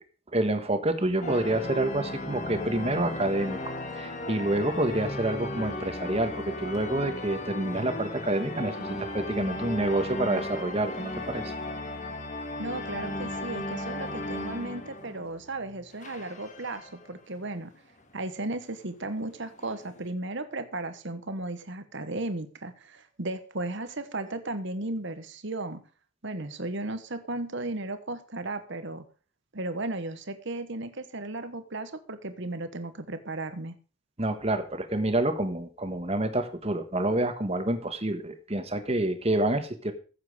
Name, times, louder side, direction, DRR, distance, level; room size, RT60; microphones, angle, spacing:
voice 1, 0.3-11.5 34.2-39.9, right 1 dB, 30° right, 8 dB, 1.4 m, -28 dB
sound 1, 1.2-15.6 15.9-17.1 17.7-17.8 18.1-18.2 19.0-20.1, left 1 dB, 35° left, 1.6 m, -36 dB
voice 2, 12.6-17.7 18.1-25.8 26.2-29.0 29.5-33.7, right 2 dB, 55° right, 10 dB, 1.2 m, -35 dB
15.0 x 7.5 x 5.0 m, 0.37 s
head